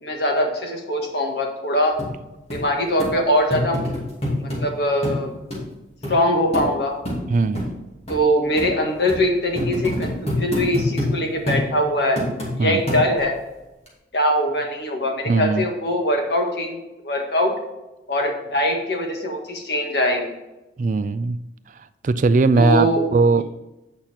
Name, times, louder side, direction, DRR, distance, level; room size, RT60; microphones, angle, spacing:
voice 1, 0.0-1.9 2.5-3.8 4.4-5.3 6.1-6.9 8.1-12.2 12.6-13.3 14.1-17.5 18.1-20.3 22.6-23.0 23.3-23.4, equal, 65° left, 2 dB, 1.6 m, -22 dB
sound 1, 2.0-2.1 2.5-2.6 3.0-3.1 3.5-4.6 5.0-5.2 5.5-5.6 6.0-6.2 6.5-6.7 7.1-7.2 7.5-7.7 8.1-8.2 8.6-8.7 9.1-9.2 9.6-11.1 11.5-11.7 12.2-12.5 12.9-13.3 13.9-14.0, left 1 dB, 35° left, 2.5 m, -25 dB
voice 2, 7.3-7.6 12.6-12.8 15.3-15.7 20.8-21.4 22.0-23.4, right 3 dB, 45° right, 14 dB, 0.3 m, -19 dB
8.7 x 5.8 x 4.3 m, 1.0 s
head